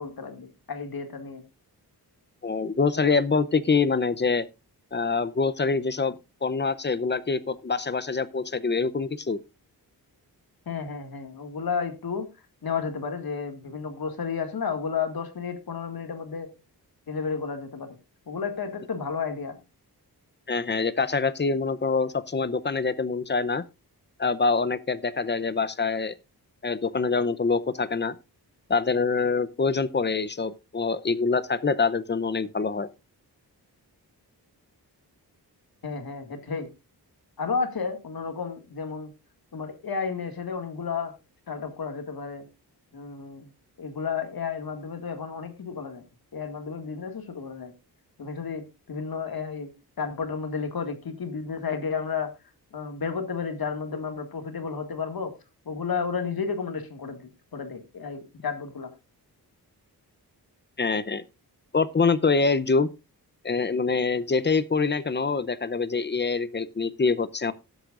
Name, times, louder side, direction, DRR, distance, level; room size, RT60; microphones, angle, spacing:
voice 1, 0.0-1.4 10.7-12.3 12.6-16.5 17.1-18.0 18.3-19.6 35.8-36.7 37.4-39.1 39.5-41.1 41.5-42.5 42.9-43.5 43.8-46.0 46.3-47.7 48.2-49.7 50.0-52.3 52.7-55.3 55.7-58.9, left 5 dB, 65° left, 2.1 m, -32 dB
voice 2, 2.4-4.4 4.9-6.1 6.4-9.4 20.5-23.6 24.2-26.2 26.6-28.2 28.7-32.9 60.8-61.2 61.7-62.9 63.4-67.5, left 4 dB, 25° left, 0.7 m, -25 dB
18.5 x 8.1 x 2.5 m
wide cardioid pair, 125°, 39 cm